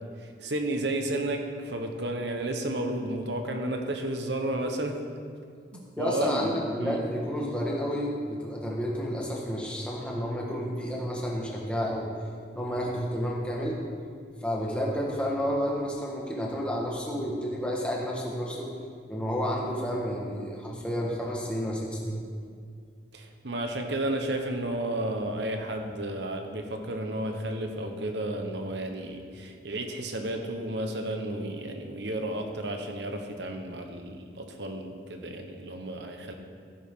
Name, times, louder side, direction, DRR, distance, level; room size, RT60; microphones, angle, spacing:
voice 1, 0.4-5.0 5.7-7.0 23.1-36.3, right 1 dB, 70° right, 4 dB, 1.2 m, -32 dB
voice 2, 6.0-12.1 12.5-13.8 14.4-18.7 19.1-22.2, equal, 5° left, -3 dB, 1.6 m, -31 dB
15.0 x 9.2 x 3.8 m, 2.2 s
head